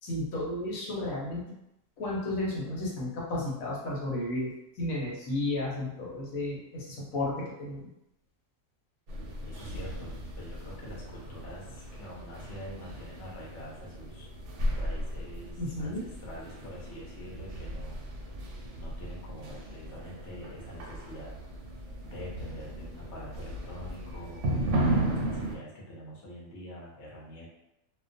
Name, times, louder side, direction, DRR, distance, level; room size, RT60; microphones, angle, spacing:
voice 1, 0.0-1.6 2.0-7.9 15.6-16.0, left 1 dB, 80° left, -4 dB, 1.1 m, -33 dB
sound 1, 9.1-25.6, right 1 dB, 70° right, 0.8 m, -35 dB
voice 2, 9.4-14.3 14.7-18.0 18.7-21.4 22.0-24.4 24.8-27.5, equal, 65° left, -4 dB, 0.9 m, -45 dB
2.4 x 2.2 x 2.5 m, 0.86 s
omnidirectional pair, 1.4 m